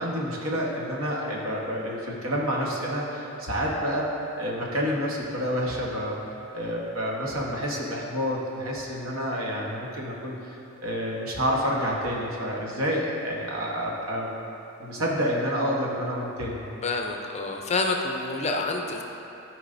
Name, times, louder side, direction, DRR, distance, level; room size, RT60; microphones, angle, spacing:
voice 1, 0.0-4.1 4.4-6.2 6.5-10.5 10.8-14.4 14.8-16.6, equal, 90° right, -3 dB, 1.2 m, -28 dB
voice 2, 16.8-19.0, left 3 dB, 30° left, 2 dB, 0.6 m, -28 dB
13.5 x 4.9 x 2.6 m, 2.9 s
head